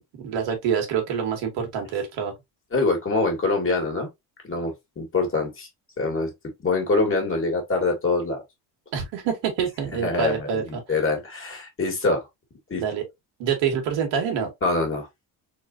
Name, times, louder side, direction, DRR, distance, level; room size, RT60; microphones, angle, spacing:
voice 1, 0.2-2.3 8.9-10.8 12.8-13.0 13.4-14.5, right 7 dB, 90° right, 2.1 m, -26 dB
voice 2, 2.7-4.1 4.4-5.7 6.0-6.3 6.6-8.4 10.0-12.3 12.7-12.8 14.6-15.1, left 3 dB, 30° left, 1.8 m, -24 dB
4.2 x 3.3 x 2.7 m
cardioid pair, 150°, 43 cm